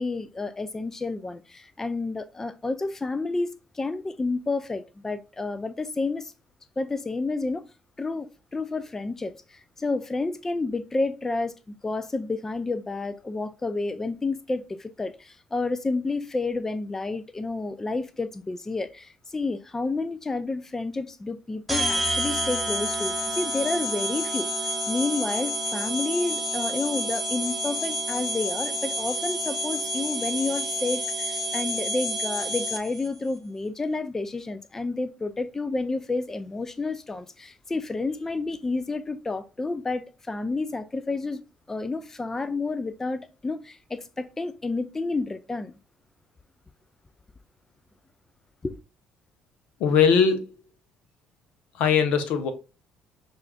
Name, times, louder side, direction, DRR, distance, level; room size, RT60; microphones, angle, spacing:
voice 1, 0.0-6.3 6.8-7.6 8.0-41.4 41.7-45.7 48.6-48.8, left 3 dB, 20° left, 0.3 m, -30 dB
sound 1, 21.7-33.1, equal, 5° left, 0.8 m, -29 dB
voice 2, 49.8-50.5 51.7-52.5, left 6 dB, 75° left, 0.6 m, -20 dB
6.1 x 2.4 x 2.3 m
supercardioid pair, 70°, 2 cm